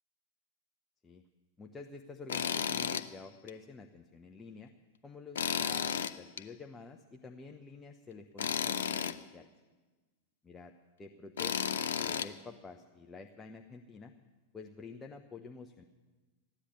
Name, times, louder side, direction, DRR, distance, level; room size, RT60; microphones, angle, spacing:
voice 1, 1.6-4.7 5.0-9.5 10.4-10.7 11.0-11.6 11.9-14.1 14.5-15.8, left 4 dB, 15° left, 4 dB, 0.8 m, -49 dB
Tools, 2.3-3.1 3.5-3.6 5.4-6.4 8.4-9.2 11.4-12.3, left 8 dB, 60° left, 0.6 m, -33 dB
15.0 x 10.0 x 8.4 m, 1.3 s
figure-of-eight pair, 90°, 0 cm